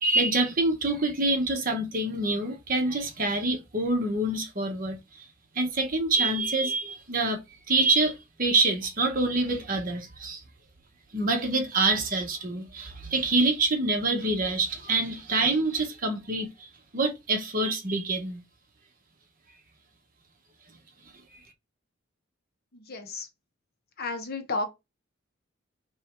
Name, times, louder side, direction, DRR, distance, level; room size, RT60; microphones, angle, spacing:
voice 1, 0.0-5.3 5.5-7.4 7.7-10.4 11.1-16.7 16.9-18.4, right 2 dB, 45° right, 1.1 m, -26 dB
voice 2, 22.7-23.3 24.0-24.7, left 3 dB, 50° left, 1.0 m, -32 dB
3.6 x 3.2 x 4.4 m
head